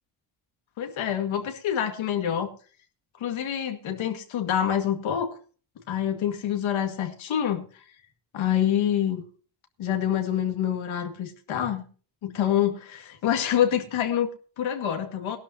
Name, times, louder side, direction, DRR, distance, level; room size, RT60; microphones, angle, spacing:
voice 1, 0.8-2.5 3.2-5.4 5.9-7.8 8.3-9.2 9.8-11.8 12.2-15.4, left 10 dB, 75° left, 5 dB, 2.2 m, -26 dB
18.5 x 12.5 x 2.9 m, 0.40 s
cardioid pair, 115°, 48 cm